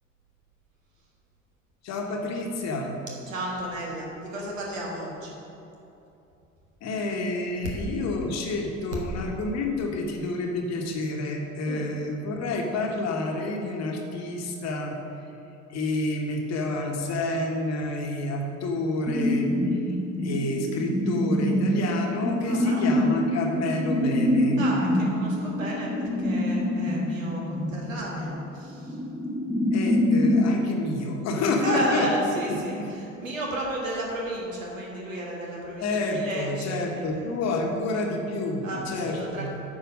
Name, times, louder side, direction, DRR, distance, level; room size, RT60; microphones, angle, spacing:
voice 1, 1.8-2.9 6.8-15.0 15.7-19.8 20.2-24.6 29.7-32.1 32.8-32.9 35.8-39.5, left 2 dB, 40° left, 1 dB, 1.2 m, -29 dB
voice 2, 3.3-5.3 11.7-11.9 22.5-22.8 24.6-29.0 31.6-37.4 38.6-39.6, right 1 dB, 75° right, -3 dB, 1.7 m, -33 dB
sound 1, 19.1-30.5, left 1 dB, ahead, 0.8 m, -25 dB
8.8 x 4.9 x 5.2 m, 2.9 s
figure-of-eight pair, 60°, 39 cm